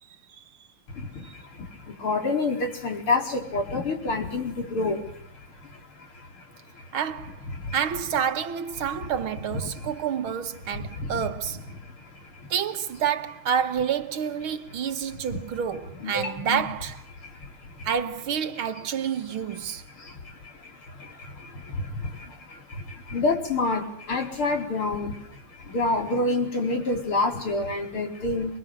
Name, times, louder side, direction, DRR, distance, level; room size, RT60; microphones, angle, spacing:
voice 1, 0.9-7.0 7.5-7.8 8.8-9.1 9.5-10.0 10.7-11.3 11.7-12.5 14.5-15.4 15.9-16.7 17.1-17.9 18.6-18.8 19.3-28.6, left 2 dB, 85° left, 5.5 m, -30 dB
voice 2, 6.9-7.4 7.7-11.6 12.5-17.0 17.9-19.8, right 8 dB, 80° right, 2.3 m, -28 dB
29.5 x 22.5 x 8.0 m
omnidirectional pair, 2.3 m